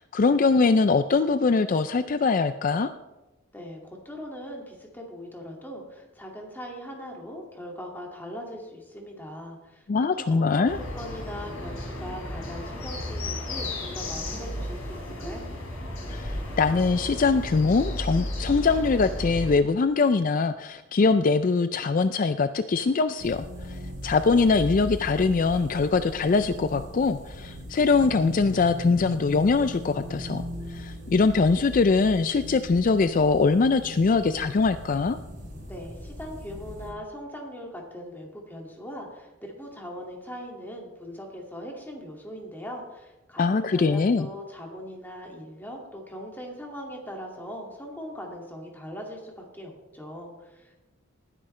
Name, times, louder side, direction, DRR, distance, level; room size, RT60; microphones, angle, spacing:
voice 1, 0.0-2.9 9.9-10.8 16.1-30.4 30.7-35.2 43.4-44.3, left 4 dB, 40° left, 11 dB, 0.4 m, -22 dB
voice 2, 3.5-9.9 10.2-15.5 35.7-50.8, equal, 10° left, 0 dB, 2.2 m, -40 dB
sound 1, 10.7-19.5, left 1 dB, 85° left, 3.5 m, -33 dB
sound 2, 23.2-36.9, left 1 dB, 40° right, 4.7 m, -39 dB
19.0 x 9.9 x 3.3 m, 1.1 s
head